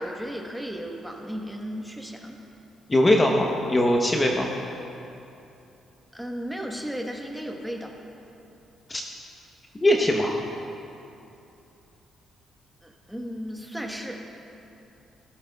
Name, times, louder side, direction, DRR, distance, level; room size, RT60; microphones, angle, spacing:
voice 1, 0.0-2.4 6.1-7.9 12.8-14.2, equal, ahead, 1 dB, 1.2 m, -35 dB
voice 2, 2.9-4.5 8.9-9.0 9.8-10.4, left 1 dB, 20° left, 1 dB, 0.9 m, -21 dB
17.0 x 13.0 x 2.3 m, 2.8 s
cardioid pair, 90°, 0 cm